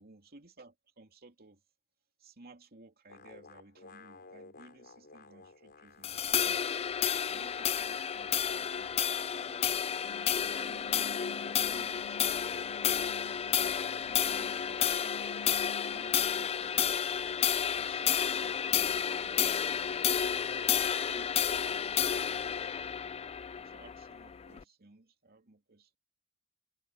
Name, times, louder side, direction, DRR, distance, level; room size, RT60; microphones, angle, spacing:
voice 1, 0.0-1.6 2.2-6.7 7.2-9.1 9.3-9.8 10.3-12.7 13.5-15.2 15.9-17.2 17.7-19.4 20.8-22.1 23.5-26.0, right 2 dB, 45° right, 2.8 m, -56 dB
sound 1, 3.1-6.4 6.6-9.9 10.4-18.5, left 4 dB, 45° left, 3.8 m, -56 dB
sound 2, 6.0-24.6, left 8 dB, 25° left, 0.4 m, -31 dB
sound 3, 10.0-16.0, left 2 dB, 80° left, 0.7 m, -51 dB
head